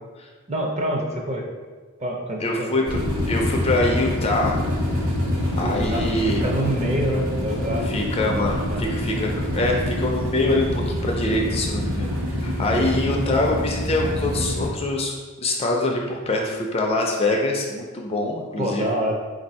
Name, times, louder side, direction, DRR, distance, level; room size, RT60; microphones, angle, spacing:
voice 1, 0.5-1.4 2.0-2.7 5.6-6.1 6.4-7.9 8.7-8.8 12.7-12.9 18.6-19.1, right 1 dB, 30° right, 1 dB, 0.5 m, -26 dB
voice 2, 2.4-4.6 5.6-6.4 7.8-12.1 12.4-18.9, left 2 dB, 25° left, 1 dB, 0.3 m, -24 dB
sound 1, 2.9-14.7, left 1 dB, 75° right, 1.1 m, -26 dB
3.9 x 2.6 x 4.1 m, 1.4 s
head